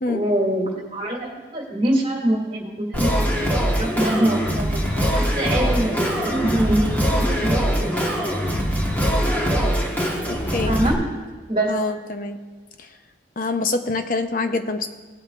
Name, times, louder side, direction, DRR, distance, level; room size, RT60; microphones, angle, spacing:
voice 1, 0.1-3.2 3.7-8.1 10.7-11.1 11.5-11.7, right 1 dB, 30° right, -3 dB, 2.7 m, -24 dB
Singing, 2.9-10.9, equal, 10° left, 1.3 m, -22 dB
voice 2, 11.7-12.4 12.8-12.9 13.4-14.9, left 3 dB, 45° left, 7 dB, 0.7 m, -25 dB
18.0 x 9.7 x 2.5 m, 1.4 s
head